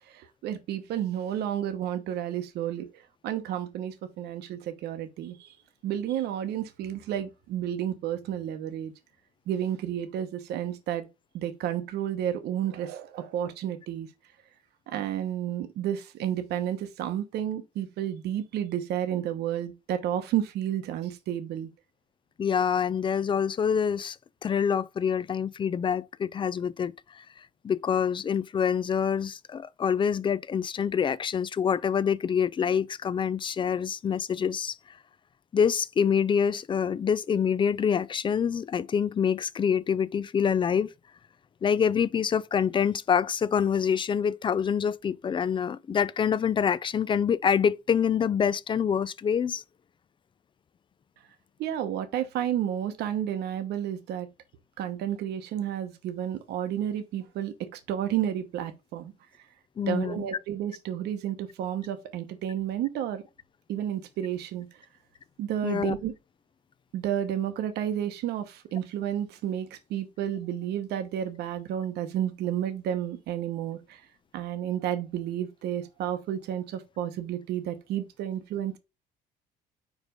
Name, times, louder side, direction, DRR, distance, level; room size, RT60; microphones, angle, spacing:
voice 1, 0.1-2.9 3.2-5.6 5.8-8.9 9.5-11.1 11.3-14.1 14.9-21.7 51.6-54.3 54.8-59.1 59.9-63.2 63.7-64.7 65.4-66.1 66.9-74.0 74.3-78.8, right 10 dB, 75° right, 1.0 m, -31 dB
voice 2, 22.4-24.2 24.4-27.2 27.6-34.8 35.5-40.9 41.6-49.6 59.8-60.3 65.6-65.9, left 7 dB, 30° left, 0.4 m, -26 dB
5.1 x 4.9 x 5.1 m
cardioid pair, 110°, 17 cm